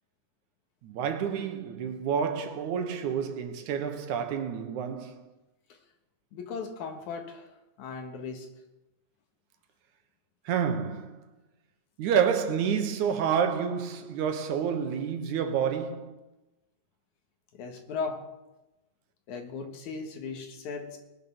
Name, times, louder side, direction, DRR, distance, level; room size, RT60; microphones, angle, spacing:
voice 1, 0.8-5.2 10.5-11.2 12.0-16.2, right 7 dB, 80° right, 2.6 m, -29 dB
voice 2, 6.3-7.5 7.8-8.5 17.5-18.2 19.3-21.0, left 5 dB, 80° left, 2.9 m, -37 dB
20.0 x 6.9 x 6.2 m
omnidirectional pair, 3.4 m